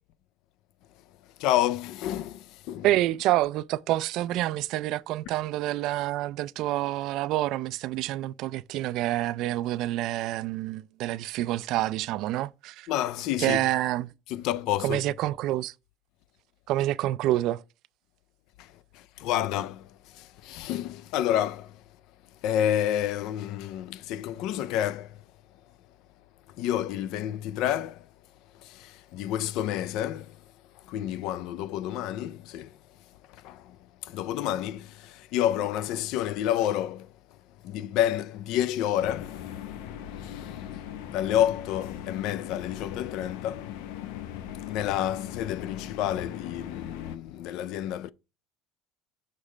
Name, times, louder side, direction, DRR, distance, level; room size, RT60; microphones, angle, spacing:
voice 1, 1.4-2.9 12.9-13.6 14.3-15.0 18.6-21.8 22.4-25.2 26.6-28.1 28.6-30.4 30.8-32.7 33.3-33.8 34.0-37.1 37.6-39.4 40.2-40.6 41.1-43.7 44.7-48.1, left 11 dB, 60° left, 0.4 m, -29 dB
voice 2, 2.8-12.9 13.4-14.1 14.8-15.7 16.7-17.6, right 15 dB, 55° right, 0.3 m, -27 dB
sound 1, 39.0-47.2, left 10 dB, 85° left, 0.7 m, -39 dB
6.6 x 3.2 x 4.9 m
cardioid pair, 160°, 0 cm